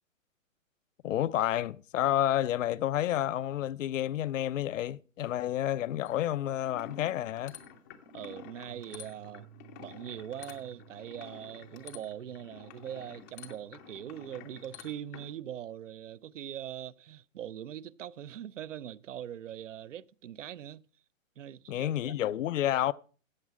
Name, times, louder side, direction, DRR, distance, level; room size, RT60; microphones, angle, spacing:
voice 1, 1.0-7.6 21.7-22.9, left 12 dB, 70° left, 0.5 m, -30 dB
sound 1, 6.0-15.3, left 8 dB, 15° left, 0.5 m, -50 dB
voice 2, 8.1-9.5 9.8-20.8 21.4-22.1, right 10 dB, 65° right, 0.6 m, -42 dB
Bass guitar, 8.7-14.9, right 13 dB, 85° right, 3.3 m, -57 dB
14.0 x 8.5 x 4.7 m
hypercardioid pair, 150°, 40 cm